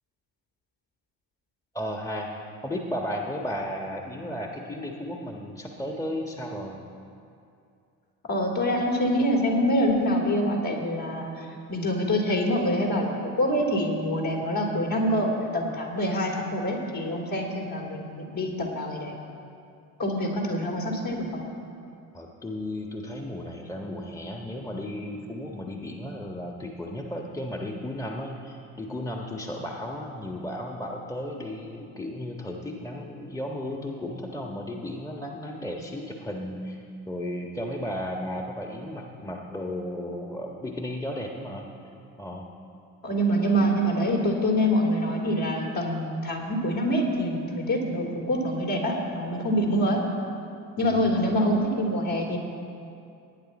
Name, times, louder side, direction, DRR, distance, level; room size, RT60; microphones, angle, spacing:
voice 1, 1.7-2.3 2.6-6.8 22.1-36.8 37.1-41.7 42.2-42.5 50.8-51.2, left 1 dB, 5° left, 1 dB, 1.4 m, -34 dB
voice 2, 8.3-19.1 20.0-21.4 43.0-50.0 50.8-52.4, equal, 50° left, -2 dB, 3.2 m, -25 dB
19.0 x 9.4 x 4.3 m, 2.5 s
hypercardioid pair, 50°, 45 cm